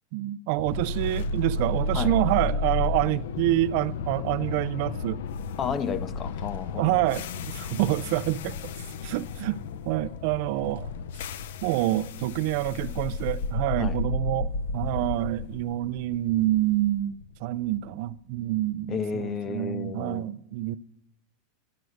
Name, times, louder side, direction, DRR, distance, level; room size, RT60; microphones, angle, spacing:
voice 1, 0.1-5.2 6.8-8.7 9.0-9.6 9.9-10.9 11.6-20.8, right 16 dB, 45° right, 0.4 m, -27 dB
sound 1, 0.6-18.7, left 3 dB, 70° left, 0.6 m, -33 dB
voice 2, 5.6-6.9 13.8-14.0 18.9-20.2, left 6 dB, 20° left, 0.5 m, -32 dB
12.5 x 10.5 x 6.4 m
supercardioid pair, 175°, 0 cm